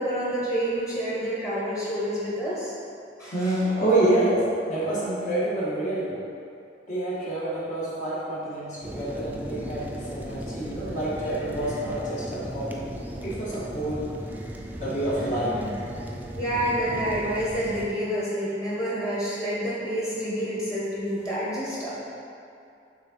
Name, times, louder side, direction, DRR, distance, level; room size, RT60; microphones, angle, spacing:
voice 1, 0.0-2.7 3.2-3.6 15.2-15.3 15.6-15.7 16.3-22.0, equal, 20° left, -8 dB, 1.3 m, -28 dB
voice 2, 3.3-6.1 6.9-12.9 13.2-14.1 14.8-15.6, right 1 dB, 45° left, -8 dB, 1.5 m, -27 dB
sound 1, 8.8-17.9, equal, 10° right, 0.4 m, -36 dB
6.5 x 3.6 x 4.4 m, 2.5 s
head